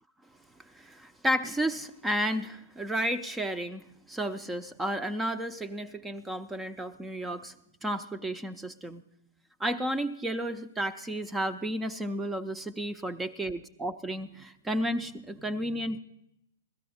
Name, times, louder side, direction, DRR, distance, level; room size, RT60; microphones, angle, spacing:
voice 1, 0.6-7.5 7.8-9.0 9.6-16.0, equal, 10° right, 10 dB, 0.6 m, -32 dB
16.5 x 13.0 x 4.3 m, 0.80 s
figure-of-eight pair, 115°, 0 cm